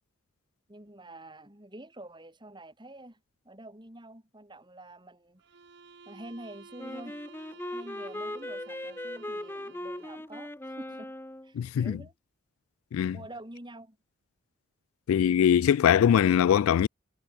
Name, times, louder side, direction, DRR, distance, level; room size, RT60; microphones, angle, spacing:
voice 1, 0.7-3.2 3.4-5.4 6.1-7.2 7.7-11.1 11.4-12.1 13.1-14.0, right 1 dB, 20° right, 4.6 m, -47 dB
sound 1, 5.4-10.4, right 4 dB, 55° right, 1.1 m, -52 dB
Wind instrument woodwind instrument, 6.8-11.5, left 1 dB, 10° left, 1.1 m, -39 dB
voice 2, 11.5-12.0 12.9-13.2 15.1-16.9, left 9 dB, 85° left, 0.3 m, -22 dB
head